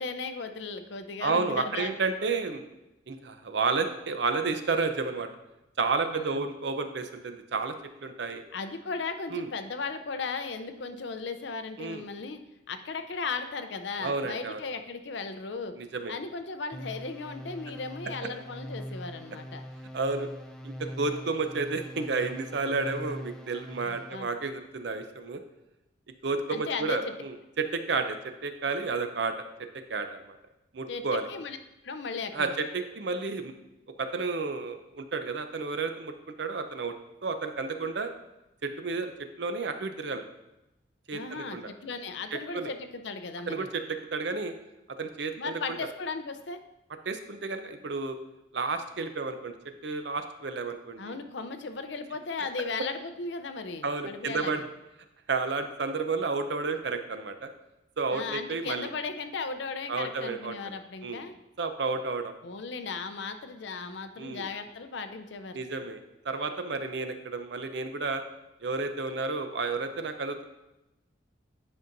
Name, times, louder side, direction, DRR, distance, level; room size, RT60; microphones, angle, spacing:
voice 1, 0.0-2.0 6.0-6.5 8.5-12.4 12.7-15.7 16.1-19.6 23.8-24.3 26.5-27.1 30.9-31.0 31.3-31.6 31.8-32.5 41.1-43.7 45.4-46.6 51.0-54.7 58.1-61.3 62.4-65.6, left 4 dB, 65° left, 8 dB, 0.6 m, -36 dB
voice 2, 1.2-2.6 3.1-5.3 5.8-7.7 8.0-8.4 9.3-9.5 11.8-12.0 14.0-14.6 15.8-16.1 19.9-20.3 20.6-25.4 26.2-29.3 29.7-30.4 30.7-31.3 32.3-33.5 34.0-36.1 36.4-36.9 37.2-38.1 38.6-40.2 41.1-41.7 42.3-42.7 43.5-44.5 44.9-45.8 47.0-48.2 48.5-49.5 49.8-51.2 53.8-54.6 55.3-57.5 58.0-58.9 59.9-60.7 61.0-61.2 61.6-62.3 64.2-64.5 65.5-68.2 68.6-70.4, right 4 dB, 60° right, 7 dB, 0.6 m, -31 dB
sound 1, 16.7-24.3, equal, 5° left, 0.4 m, -42 dB
9.9 x 5.4 x 2.6 m, 0.94 s
head